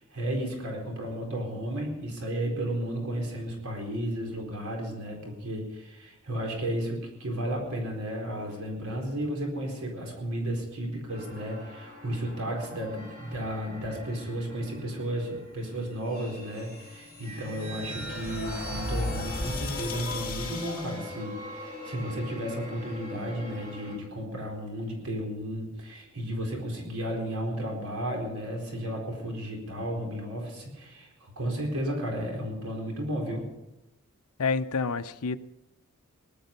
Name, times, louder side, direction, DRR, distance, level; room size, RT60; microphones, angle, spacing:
voice 1, 0.0-33.5, right 1 dB, 75° right, 0 dB, 4.4 m, -33 dB
sound 1, 11.1-24.0, left 1 dB, 35° right, 5.3 m, -43 dB
sound 2, 16.6-21.1, left 2 dB, 45° left, 3.8 m, -36 dB
voice 2, 34.4-35.4, left 4 dB, 80° left, 11 dB, 0.7 m, -28 dB
19.0 x 12.0 x 5.3 m, 0.92 s
head